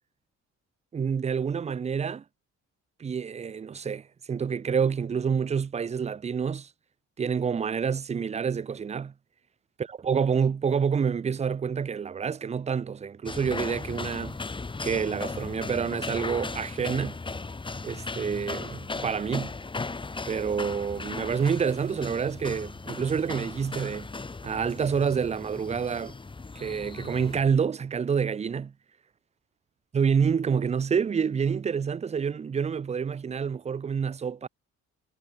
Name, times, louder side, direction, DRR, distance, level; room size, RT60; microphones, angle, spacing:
voice 1, 0.9-2.2 3.0-6.7 7.2-9.1 9.8-14.4 14.8-17.2 17.8-19.5 20.3-24.1 24.4-26.1 26.6-28.7 29.9-34.5, right 6 dB, 25° right, 0.4 m, -28 dB
sound 1, 13.3-27.4, left 3 dB, 15° left, 0.9 m, -37 dB
cardioid pair, 90°, 30 cm